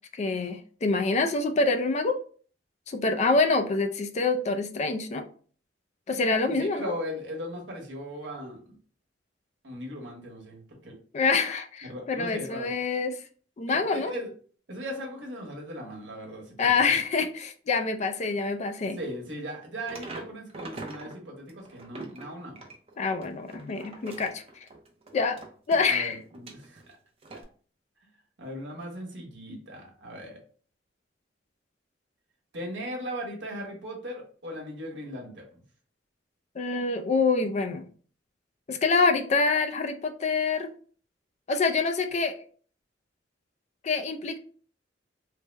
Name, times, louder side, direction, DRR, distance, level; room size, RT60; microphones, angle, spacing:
voice 1, 0.2-2.2 2.9-5.3 6.1-6.9 11.1-13.1 13.6-14.2 16.6-19.0 23.0-24.4 25.1-25.4 25.7-26.2 36.6-37.8 38.7-40.7 41.5-42.3 43.8-44.4, left 4 dB, 40° left, 7 dB, 0.4 m, -26 dB
voice 2, 6.6-8.8 9.6-11.0 11.8-12.7 13.7-14.3 14.7-17.0 19.0-22.6 25.9-27.0 27.3-27.4 28.4-30.4 32.5-35.6, equal, 85° right, 0 dB, 1.1 m, -38 dB
sound 1, 19.9-21.2 21.5-26.9 27.2-27.4, right 3 dB, 35° right, 0.5 m, -43 dB
3.2 x 2.1 x 3.3 m, 0.43 s
head